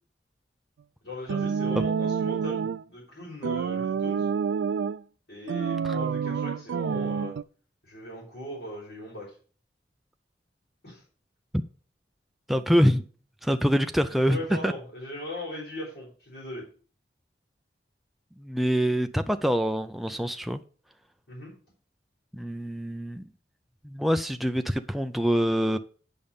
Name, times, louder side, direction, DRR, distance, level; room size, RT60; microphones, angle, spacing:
voice 1, 1.0-4.3 5.3-7.3 7.8-9.3 10.8-11.0 14.0-16.7 21.3-21.5, left 1 dB, 75° left, 4.5 m, -39 dB
sound 1, 1.3-2.8 3.4-5.0 5.5-7.4, right 6 dB, 85° right, 0.3 m, -28 dB
voice 2, 12.5-13.0 13.4-14.4 14.6-14.7 18.4-20.6 22.3-23.2 23.8-25.8, equal, ahead, 0.4 m, -25 dB
8.8 x 5.4 x 5.1 m
head